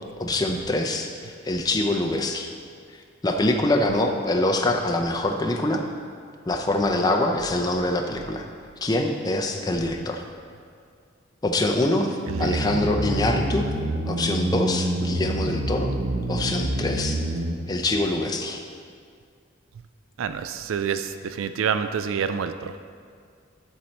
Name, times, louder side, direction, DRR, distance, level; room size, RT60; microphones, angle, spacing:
voice 1, 0.2-2.5 3.2-5.8 6.5-8.5 8.8-10.2 11.4-13.7 14.1-15.9 16.3-17.2 17.7-18.6, left 1 dB, 20° left, 3 dB, 0.5 m, -24 dB
sound 1, 12.3-17.5, right 1 dB, 60° right, 0.7 m, -27 dB
voice 2, 20.2-21.1 21.4-22.7, right 7 dB, 80° right, 10 dB, 0.3 m, -27 dB
12.5 x 4.5 x 4.1 m, 2.2 s
head